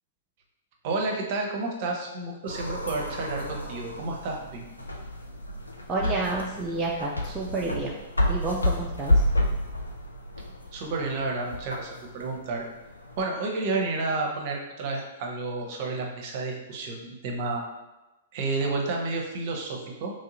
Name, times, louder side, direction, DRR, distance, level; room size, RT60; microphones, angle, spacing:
voice 1, 0.8-4.6 10.7-12.6 13.2-17.6 18.3-20.1, right 3 dB, 45° right, 1 dB, 0.8 m, -30 dB
sound 1, 2.5-13.2, left 1 dB, 85° left, 0.5 m, -30 dB
voice 2, 5.9-7.9 8.3-9.2, right 3 dB, 20° right, -3 dB, 0.4 m, -30 dB
3.1 x 2.7 x 3.9 m, 1.0 s
figure-of-eight pair, 105°, 0 cm